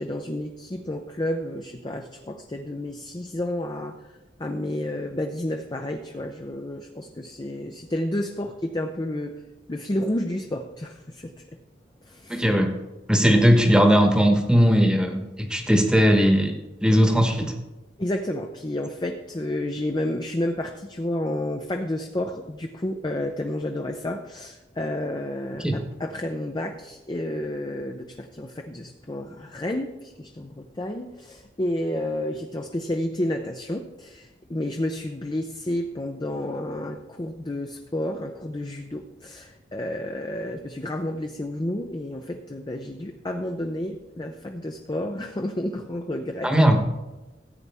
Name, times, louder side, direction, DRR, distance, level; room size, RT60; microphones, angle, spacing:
voice 1, 0.0-4.0 4.4-9.3 9.7-11.3 12.1-12.5 18.0-46.5, left 1 dB, 25° left, 4 dB, 0.6 m, -30 dB
voice 2, 12.3-12.8 13.1-17.5 25.6-25.8 46.4-46.8, equal, 5° right, 4 dB, 1.1 m, -19 dB
14.5 x 8.6 x 3.5 m, 1.1 s
head